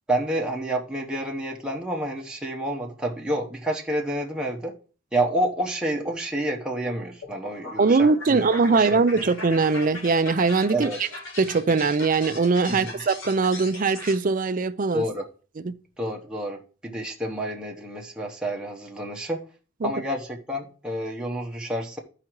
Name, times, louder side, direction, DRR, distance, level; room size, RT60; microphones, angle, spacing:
voice 1, 0.1-4.7 5.1-9.0 10.7-11.0 12.7-13.0 14.9-15.3 16.0-19.5 19.8-22.0, right 1 dB, 5° right, 1.0 m, -29 dB
sound 1, 7.2-14.2, left 2 dB, 75° left, 2.8 m, -39 dB
voice 2, 7.8-10.9 11.4-15.0 15.6-15.7 19.8-19.9, right 4 dB, 40° right, 0.5 m, -21 dB
12.0 x 4.9 x 4.6 m
head